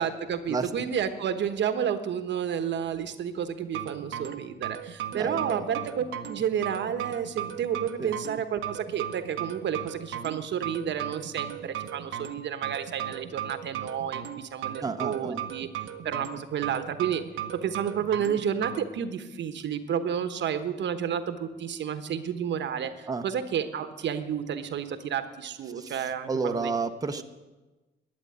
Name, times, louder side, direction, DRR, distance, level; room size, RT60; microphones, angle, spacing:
voice 1, 0.0-15.7 16.0-17.2 17.5-26.7 27.2-27.3, right 8 dB, 65° right, 9 dB, 1.1 m, -31 dB
sound 1, 3.6-18.8, right 10 dB, 85° right, 0.9 m, -36 dB
voice 2, 5.1-5.6 8.0-8.1 14.8-15.4 23.1-23.2 25.8-26.0 26.3-27.2, right 4 dB, 20° right, 6 dB, 0.8 m, -31 dB
12.5 x 8.9 x 9.4 m, 1.2 s
cardioid pair, 90°, 20 cm